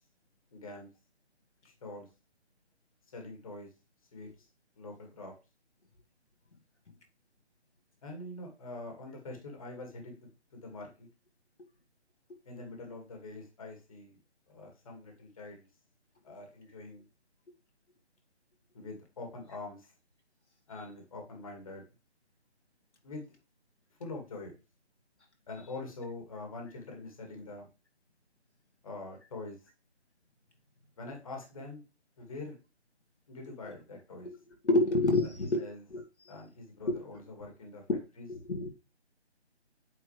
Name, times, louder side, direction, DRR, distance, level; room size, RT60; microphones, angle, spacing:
voice 1, 0.5-0.9 1.6-2.1 3.1-3.7 4.1-4.3 4.8-5.3 8.0-10.1 10.5-11.1 12.5-14.2 14.5-15.7 16.2-17.0 18.7-19.9 20.7-21.9 23.0-23.3 24.0-24.5 25.5-27.7 28.8-29.6 31.0-31.8 32.2-32.6 33.3-34.3 35.2-35.3 35.6-35.8 36.3-37.8 38.2-38.3, left 2 dB, 30° left, 2 dB, 2.1 m, -44 dB
voice 2, 34.6-35.6 35.9-36.0 36.9-37.0 37.9-38.0 38.3-38.7, left 2 dB, 75° left, 3 dB, 2.0 m, -27 dB
8.8 x 4.5 x 3.3 m, 0.29 s
figure-of-eight pair, 165°, 34 cm